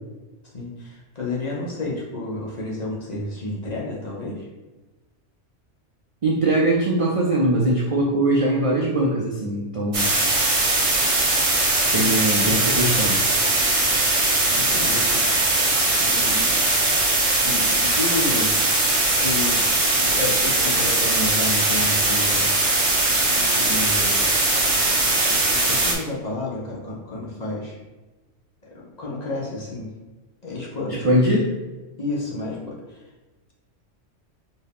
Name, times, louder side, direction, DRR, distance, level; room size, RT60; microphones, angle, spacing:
voice 1, 0.5-4.5 12.0-12.2 14.4-15.6 16.0-16.5 17.4-18.6 19.2-19.6 19.9-22.4 23.3-24.3 25.2-27.8 28.6-29.9 30.4-31.2 32.0-33.0, left 2 dB, 40° left, -4 dB, 0.8 m, -31 dB
voice 2, 6.2-10.1 11.9-13.2 30.9-31.4, right 1 dB, 60° right, -3 dB, 0.3 m, -21 dB
sound 1, 9.9-25.9, right 2 dB, 35° right, 0.8 m, -20 dB
4.3 x 2.7 x 3.4 m, 1.2 s
omnidirectional pair, 1.3 m